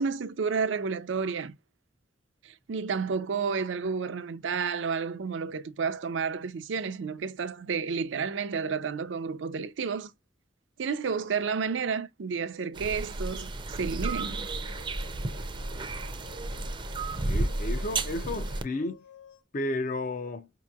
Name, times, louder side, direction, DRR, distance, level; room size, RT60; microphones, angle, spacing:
voice 1, 0.0-1.6 2.4-10.1 10.8-14.5, right 5 dB, 90° right, 0.5 m, -31 dB
sound 1, 12.7-18.6, right 2 dB, 25° right, 0.4 m, -32 dB
sound 2, 14.0-19.4, left 9 dB, 70° left, 0.8 m, -53 dB
voice 2, 17.3-19.0 19.5-20.5, left 2 dB, 45° left, 0.5 m, -32 dB
5.0 x 2.9 x 2.3 m
head